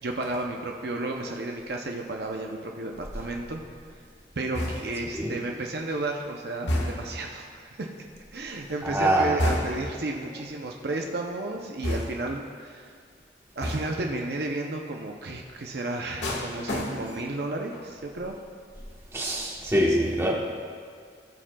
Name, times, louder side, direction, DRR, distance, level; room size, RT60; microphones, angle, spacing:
voice 1, 0.0-3.6 4.4-7.9 8.3-12.9 13.6-18.4, right 2 dB, 60° right, 1 dB, 0.6 m, -32 dB
sound 1, 4.5-5.1 6.7-7.3 9.4-10.0 11.8-12.4 13.6-14.1 16.2-17.3 17.7-18.1, left 1 dB, 80° left, 1.5 m, -30 dB
voice 2, 8.8-9.4 19.1-20.3, right 1 dB, 15° right, -3 dB, 1.2 m, -24 dB
17.5 x 7.4 x 2.3 m, 2.1 s
head